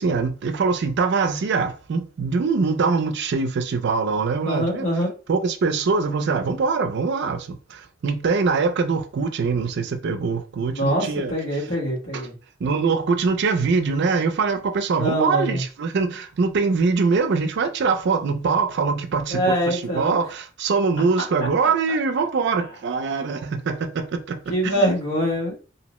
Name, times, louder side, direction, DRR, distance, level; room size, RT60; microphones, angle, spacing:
voice 1, 0.0-4.9 5.3-11.3 12.1-12.2 12.6-24.9, right 4 dB, 60° right, 0.4 m, -23 dB
voice 2, 4.4-5.1 10.7-12.3 14.9-15.6 19.3-20.2 21.4-21.5 21.9-22.6 24.5-25.6, equal, 70° left, 1.3 m, -24 dB
2.7 x 2.0 x 2.9 m
head